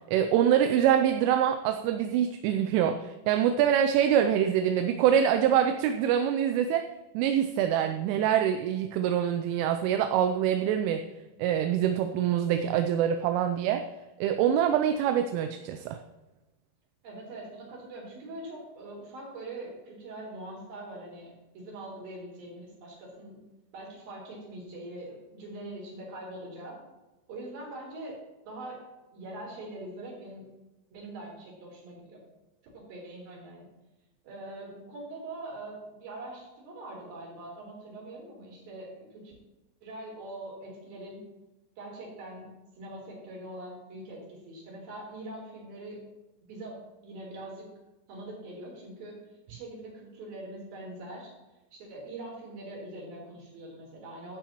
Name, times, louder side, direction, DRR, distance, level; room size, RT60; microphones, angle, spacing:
voice 1, 0.1-6.9 7.1-11.1 11.4-13.9 14.2-16.0, right 9 dB, 85° right, 7 dB, 3.1 m, -25 dB
voice 2, 17.0-23.4 23.7-26.8 27.3-28.2 28.4-28.8 29.1-30.4 30.9-32.2 32.7-33.7 34.2-39.3 39.8-41.2 41.8-42.5 42.8-46.0 46.4-46.7 47.0-47.7 48.1-49.2 49.5-51.3 51.7-54.4, right 1 dB, 50° right, -3 dB, 5.3 m, -43 dB
15.5 x 11.5 x 3.1 m, 1.1 s
omnidirectional pair, 5.7 m